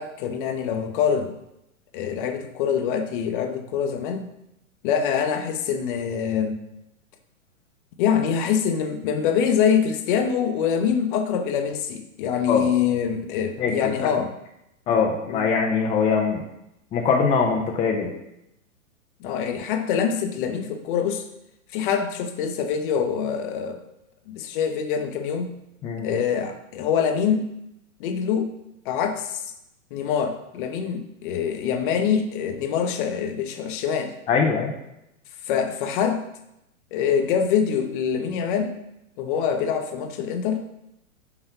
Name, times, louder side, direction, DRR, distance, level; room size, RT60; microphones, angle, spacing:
voice 1, 0.0-1.3 1.9-4.3 4.8-6.6 8.0-14.3 14.9-15.0 15.3-15.4 19.2-21.2 21.7-23.8 24.3-25.5 26.0-27.5 28.0-28.5 28.8-29.4 29.9-34.1 35.5-36.2 36.9-38.8 39.2-40.7, left 7 dB, 40° left, 7 dB, 0.8 m, -24 dB
voice 2, 14.9-16.4 16.9-18.1 25.8-26.1 34.3-34.7, left 5 dB, 15° left, 1 dB, 0.6 m, -22 dB
5.9 x 4.3 x 5.6 m, 0.85 s
hypercardioid pair, 120°, 41 cm